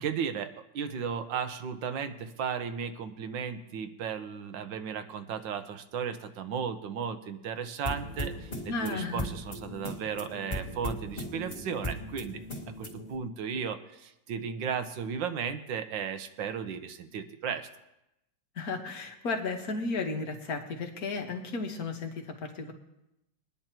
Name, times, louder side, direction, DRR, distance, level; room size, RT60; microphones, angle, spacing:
voice 1, 0.0-12.4 12.8-17.7, right 7 dB, 85° right, 8 dB, 1.6 m, -35 dB
sound 1, 7.8-13.2, left 1 dB, 25° left, 1.9 m, -38 dB
voice 2, 8.7-9.3 18.6-22.7, left 3 dB, 55° left, 3 dB, 1.7 m, -34 dB
22.0 x 10.0 x 3.0 m, 0.88 s
omnidirectional pair, 2.0 m